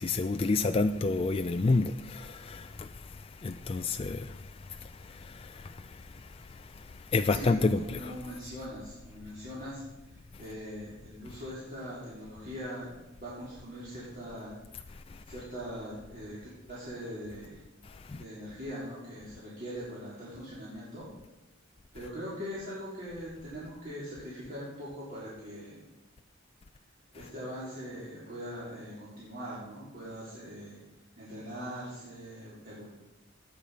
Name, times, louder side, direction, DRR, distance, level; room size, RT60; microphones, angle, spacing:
voice 1, 0.0-2.9 3.4-4.3 5.1-5.7 7.1-8.1 18.1-18.2, left 3 dB, 30° left, 0.4 m, -29 dB
voice 2, 7.3-12.9 13.2-14.5 15.3-16.4 16.7-17.6 18.2-21.1 21.9-25.8 27.1-30.8 31.2-32.9, equal, 45° right, 3.9 m, -41 dB
18.0 x 7.0 x 5.1 m
head